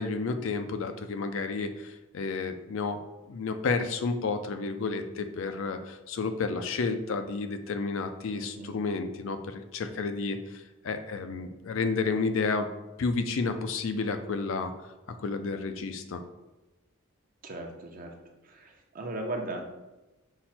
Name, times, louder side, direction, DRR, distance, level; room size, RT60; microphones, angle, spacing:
voice 1, 0.0-3.0 3.3-12.7 13.0-14.7 15.1-16.2, left 4 dB, 65° left, 8 dB, 0.4 m, -31 dB
voice 2, 8.3-8.7 17.4-18.1 18.4-19.7, right 2 dB, 40° right, 2 dB, 0.7 m, -37 dB
5.7 x 2.2 x 4.2 m, 1.0 s
head